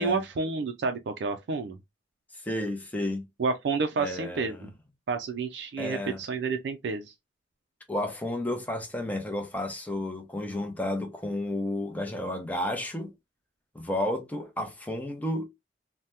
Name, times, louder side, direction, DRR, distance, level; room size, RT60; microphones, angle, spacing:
voice 1, 0.0-1.8 3.4-4.7 5.1-7.1, right 4 dB, 65° right, 0.3 m, -30 dB
voice 2, 2.4-3.2 4.0-4.7 5.8-6.2 7.9-13.1 13.7-15.5, left 1 dB, 10° left, 0.6 m, -32 dB
2.7 x 2.1 x 3.3 m
head